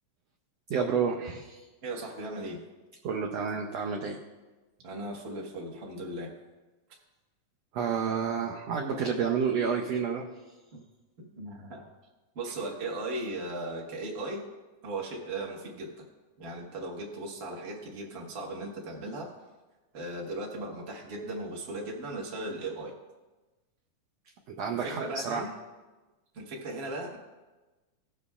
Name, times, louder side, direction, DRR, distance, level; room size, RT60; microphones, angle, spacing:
voice 1, 0.7-1.6 3.0-4.2 7.7-10.3 24.5-25.5, right 6 dB, 85° right, 0 dB, 1.4 m, -30 dB
voice 2, 1.8-2.6 4.8-6.3 10.7-10.8 11.2-11.9 12.3-14.5 14.8-16.1 16.4-19.3 19.9-22.9 24.7-25.5 26.3-27.2, right 2 dB, 55° right, -2 dB, 0.6 m, -37 dB
19.0 x 6.9 x 2.4 m, 1.2 s
omnidirectional pair, 3.9 m